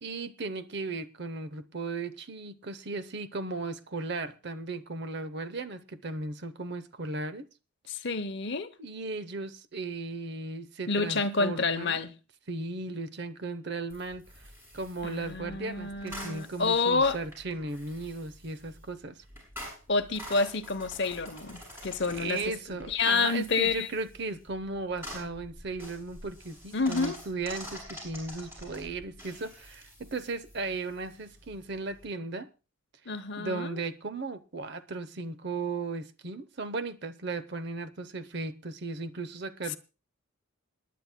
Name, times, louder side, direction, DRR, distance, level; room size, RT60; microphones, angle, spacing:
voice 1, 0.0-7.5 8.8-12.0 12.5-14.2 14.7-19.2 22.1-32.5 33.4-39.8, right 3 dB, 50° right, 0.7 m, -36 dB
voice 2, 7.9-8.7 10.9-12.1 15.0-17.2 19.9-22.5 22.9-23.9 26.7-27.2 33.1-33.8 39.7-39.8, left 4 dB, 55° left, 0.8 m, -29 dB
sound 1, 13.9-32.1, equal, 10° right, 6.8 m, -47 dB
28.0 x 10.5 x 2.2 m
head